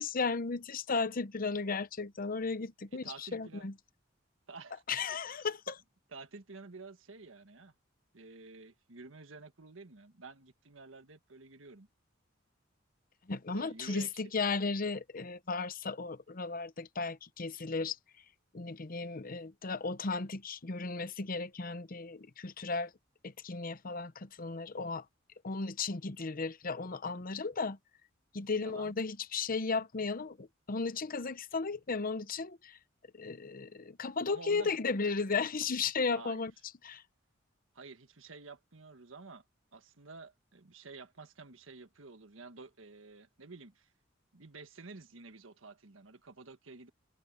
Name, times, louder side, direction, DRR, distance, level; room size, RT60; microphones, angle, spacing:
voice 1, 0.0-3.7 4.9-5.7 13.3-18.0 18.5-22.9 23.2-25.0 25.4-27.8 28.3-32.8 33.1-36.5 36.8-37.0, left 4 dB, 45° left, 0.8 m, -35 dB
voice 2, 2.9-3.7 4.5-4.8 5.3-5.4 6.1-7.7 8.1-11.9 13.5-14.3 27.0-27.2 28.5-29.0 34.3-34.7 36.1-36.5 37.7-39.4 39.7-43.9 44.3-46.9, right 3 dB, 80° right, 1.5 m, -51 dB
head